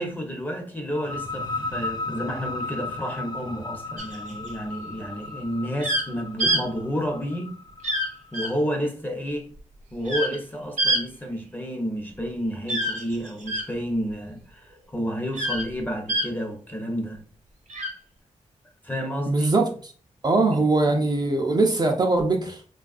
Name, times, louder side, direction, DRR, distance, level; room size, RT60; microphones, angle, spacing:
voice 1, 0.0-7.5 8.3-9.5 9.9-17.2 18.8-19.5 20.5-21.0, equal, 15° left, 0.8 m, -30 dB
sound 1, 0.9-8.4, left 2 dB, 30° left, 0.4 m, -35 dB
sound 2, 4.0-4.5 5.8-6.1 6.4-6.6 7.8-8.1 8.3-8.5 10.1-10.4 10.8-11.0 12.7-13.7 15.3-15.7 16.1-16.3 17.7-17.9, right 1 dB, 70° right, 0.9 m, -25 dB
voice 2, 19.3-19.7 20.2-22.6, right 2 dB, 30° right, 0.5 m, -21 dB
3.2 x 2.3 x 2.4 m
cardioid pair, 65°, 13 cm